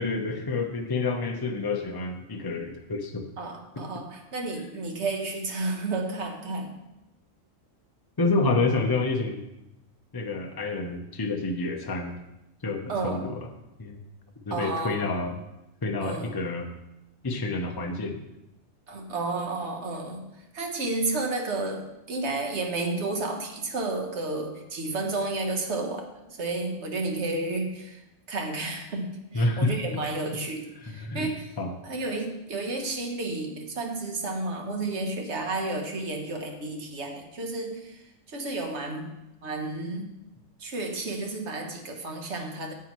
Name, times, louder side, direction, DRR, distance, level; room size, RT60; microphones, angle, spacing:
voice 1, 0.0-3.2 8.2-9.4 10.1-12.1 12.6-13.4 13.8-14.0 14.5-15.3 15.8-16.7 17.2-18.2 29.3-29.8 30.8-31.3 31.6-31.7, left 3 dB, 20° left, 3 dB, 0.6 m, -28 dB
voice 2, 3.4-6.8 12.9-13.4 14.5-15.1 16.0-16.4 18.9-28.0 28.3-31.5 31.8-40.1 40.6-42.7, right 2 dB, 60° right, 3 dB, 1.3 m, -32 dB
9.3 x 7.8 x 3.1 m, 0.90 s
omnidirectional pair, 1.4 m